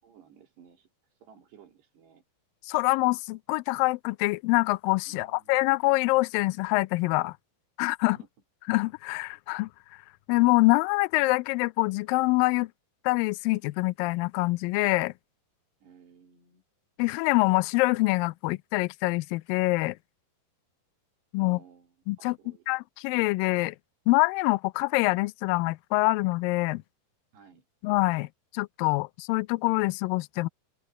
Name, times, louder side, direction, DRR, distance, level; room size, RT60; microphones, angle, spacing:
voice 1, 0.0-2.2 5.1-5.6 8.0-8.3 15.8-16.6 21.4-22.7 27.3-27.7, right 7 dB, 90° right, 5.7 m, -56 dB
voice 2, 2.7-7.4 7.8-8.2 8.7-9.7 10.3-12.7 13.0-15.1 17.0-20.0 21.3-21.6 22.1-22.4 22.7-23.8 24.1-26.8 27.8-28.3 28.5-30.5, left 22 dB, 90° left, 2.0 m, -25 dB
open air
omnidirectional pair, 4.7 m